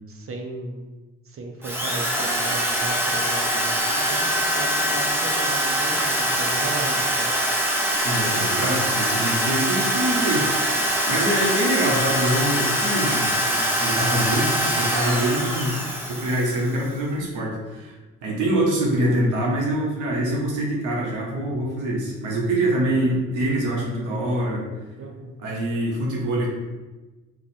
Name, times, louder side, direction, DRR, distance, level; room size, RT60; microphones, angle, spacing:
voice 1, 0.1-0.9 1.3-4.3 4.6-7.3 25.0-25.4, right 2 dB, 45° right, 2 dB, 0.9 m, -35 dB
Drill, 1.6-16.8, equal, 5° right, 0.8 m, -23 dB
voice 2, 8.0-10.4 11.1-15.7 16.1-17.9 18.2-24.6 25.4-26.5, right 1 dB, 85° right, -3 dB, 1.3 m, -24 dB
4.8 x 2.5 x 4.3 m, 1.2 s
cardioid pair, 90°, 30 cm